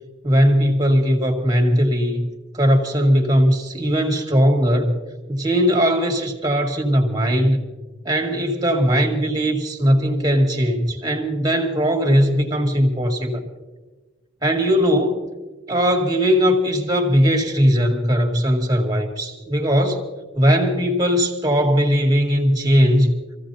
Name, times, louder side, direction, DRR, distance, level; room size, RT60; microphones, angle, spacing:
voice 1, 0.2-2.3 2.5-5.0 5.3-7.6 8.1-13.4 14.4-15.3 15.7-20.1 20.3-23.1, equal, 20° right, 2 dB, 2.1 m, -19 dB
27.0 x 15.5 x 2.8 m, 1.2 s
head